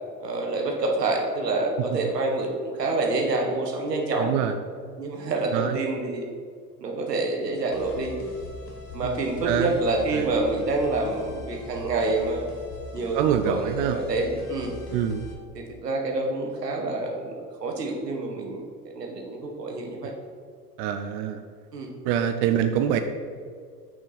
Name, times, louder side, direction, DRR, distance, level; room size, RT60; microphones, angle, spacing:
voice 1, 0.2-4.3 5.0-6.2 6.8-8.2 8.9-12.5 12.9-14.8 15.5-18.6 18.9-20.1 21.7-21.9, right 2 dB, 85° right, 1 dB, 1.5 m, -27 dB
voice 2, 4.2-4.6 5.5-5.8 9.0-9.2 9.4-9.8 10.1-10.3 13.1-14.0 14.9-15.3 20.8-21.4 22.0-23.0, right 9 dB, 50° right, 7 dB, 0.7 m, -25 dB
sound 1, 7.7-15.3, left 3 dB, 85° left, 1.8 m, -41 dB
8.7 x 6.5 x 4.1 m, 2.1 s
hypercardioid pair, 80°, 47 cm